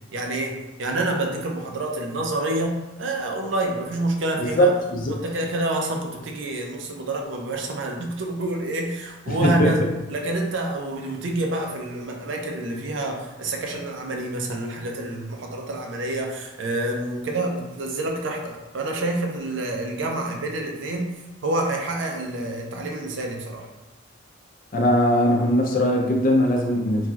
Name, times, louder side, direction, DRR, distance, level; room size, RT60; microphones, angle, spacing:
voice 1, 0.1-4.7 5.1-9.8 10.1-23.7, right 2 dB, 75° right, 1 dB, 0.5 m, -28 dB
voice 2, 4.4-5.1 9.3-9.7 24.7-27.1, equal, 45° left, 0 dB, 0.5 m, -20 dB
3.1 x 2.6 x 2.3 m, 1.1 s
head